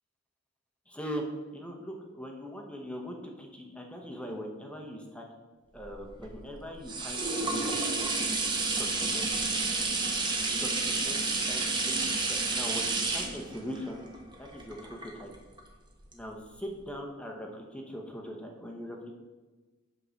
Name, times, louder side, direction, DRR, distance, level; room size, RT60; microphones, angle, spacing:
voice 1, 0.9-1.2 1.5-5.2 5.7-8.5 8.8-9.7 10.6-14.0 14.4-15.3 16.1-19.1, equal, 5° left, 1 dB, 0.9 m, -41 dB
sound 1, 5.8-15.6 16.1-16.2, right 3 dB, 25° right, 1.1 m, -30 dB
8.1 x 3.8 x 6.3 m, 1.3 s
head